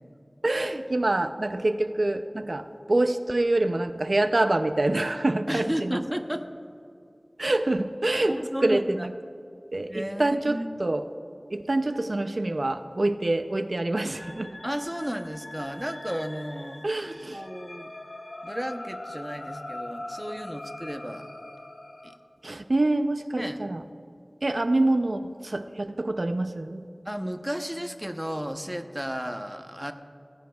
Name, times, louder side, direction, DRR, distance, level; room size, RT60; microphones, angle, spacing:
voice 1, 0.4-2.6 2.9-6.0 7.4-9.1 9.7-11.1 11.5-14.5 16.8-17.4 22.4-23.8 24.4-26.8, right 2 dB, 65° right, 9 dB, 0.4 m, -26 dB
voice 2, 5.5-6.5 8.3-9.1 9.8-10.7 14.6-16.9 17.3-17.9 18.4-21.3 22.0-22.1 23.4-23.6 27.0-29.9, equal, 10° right, 7 dB, 0.8 m, -33 dB
sound 1, 14.0-22.2, left 1 dB, 70° left, 1.1 m, -41 dB
18.5 x 16.5 x 2.3 m, 2.5 s
wide cardioid pair, 50°, 0 cm